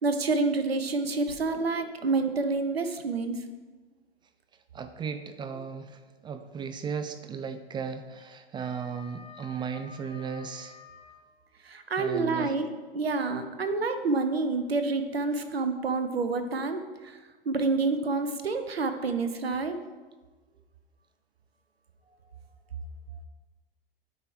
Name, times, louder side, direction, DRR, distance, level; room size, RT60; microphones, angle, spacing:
voice 1, 0.0-3.4 11.7-17.2 17.5-19.8, right 3 dB, 80° right, 8 dB, 1.0 m, -28 dB
voice 2, 1.3-1.6 2.0-2.2 4.7-10.8 12.0-12.5, right 6 dB, 15° right, 9 dB, 0.4 m, -36 dB
Wind instrument woodwind instrument, 8.1-11.2, left 4 dB, 25° left, 2.6 m, -50 dB
9.2 x 5.7 x 4.9 m, 1.2 s
figure-of-eight pair, 95°, 30 cm